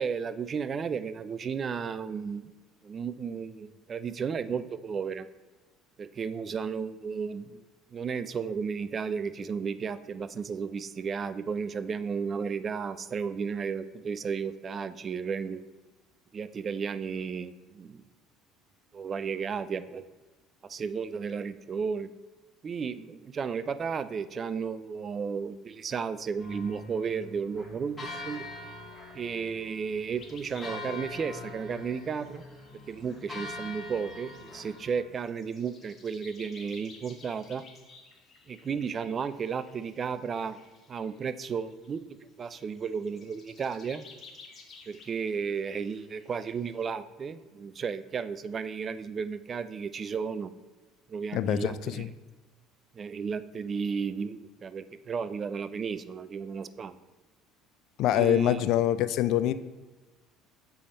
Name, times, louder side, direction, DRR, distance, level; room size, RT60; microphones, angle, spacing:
voice 1, 0.0-2.4 2.8-5.3 6.0-7.6 7.9-15.6 16.3-18.0 18.9-20.1 20.6-22.1 22.6-28.4 29.1-32.4 32.9-37.6 38.5-40.6 40.9-42.1 42.4-44.1 44.9-50.5 51.1-52.0 52.9-57.0 58.1-58.6, right 6 dB, 40° right, 14 dB, 0.4 m, -33 dB
sound 1, 26.4-35.0, left 2 dB, 20° left, 1.4 m, -43 dB
sound 2, 30.1-42.0 42.5-46.8, left 4 dB, 35° left, 1.2 m, -55 dB
voice 2, 51.3-52.1 58.0-59.5, left 11 dB, 65° left, 14 dB, 0.3 m, -25 dB
6.7 x 3.5 x 5.1 m, 1.2 s
supercardioid pair, 80°, 0 cm